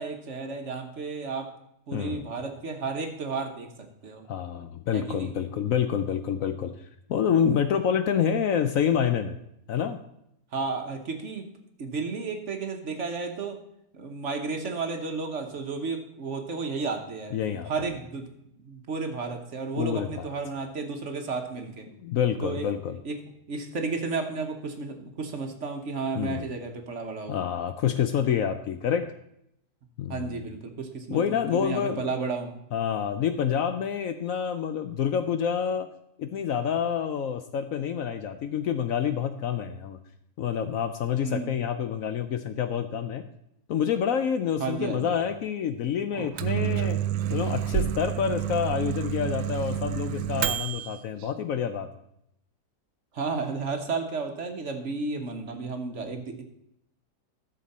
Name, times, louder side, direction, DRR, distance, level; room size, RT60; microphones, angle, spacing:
voice 1, 0.0-1.5 1.9-4.3 4.9-5.3 10.5-11.5 11.8-13.6 13.9-18.3 18.6-21.9 22.4-22.7 23.0-27.4 30.1-32.6 41.2-41.6 44.6-45.2 53.1-56.4, right 4 dB, 50° right, 5 dB, 1.2 m, -33 dB
voice 2, 1.9-2.3 4.3-6.8 7.1-9.4 9.7-10.0 17.3-17.7 19.8-20.3 22.0-23.0 26.1-26.5 27.3-29.1 30.0-30.4 31.1-32.1 32.7-35.9 36.2-40.0 40.4-43.2 43.7-47.0 47.3-51.9, left 8 dB, 65° left, 9 dB, 0.9 m, -27 dB
Microwave oven, 46.1-51.0, right 11 dB, 85° right, 1.2 m, -29 dB
13.0 x 6.8 x 4.2 m, 0.76 s
omnidirectional pair, 1.8 m